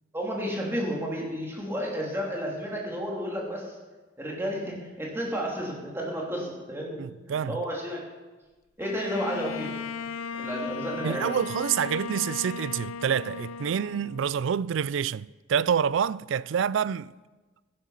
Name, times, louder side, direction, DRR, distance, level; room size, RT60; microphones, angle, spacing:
voice 1, 0.1-3.7 4.2-7.0 7.3-8.0 8.8-9.7 10.4-11.3, equal, 10° right, 2.9 m, -32 dB
voice 2, 7.0-7.6 11.0-17.1, right 8 dB, 65° right, 0.3 m, -27 dB
Bowed string instrument, 8.8-14.6, left 5 dB, 85° left, 0.5 m, -37 dB
14.5 x 11.0 x 5.6 m
head